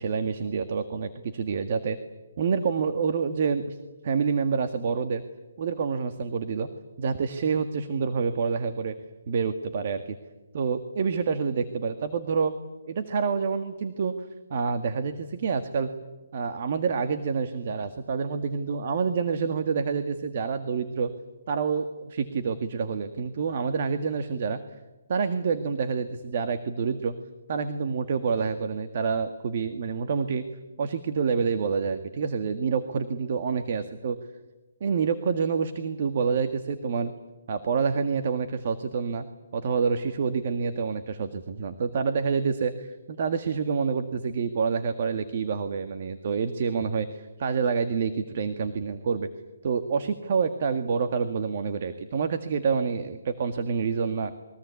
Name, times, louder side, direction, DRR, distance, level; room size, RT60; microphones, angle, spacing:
voice 1, 0.0-2.0 2.4-3.8 4.0-5.2 5.6-6.7 7.0-8.9 9.3-10.2 10.5-12.5 12.9-14.1 14.5-15.9 16.3-21.1 21.5-24.6 25.1-27.1 27.5-30.4 30.8-34.2 34.8-37.1 37.5-39.3 39.5-49.3 49.6-54.3, right 5 dB, 45° right, 8 dB, 1.8 m, -27 dB
28.0 x 22.5 x 8.5 m, 1.1 s
hypercardioid pair, 165°, 0 cm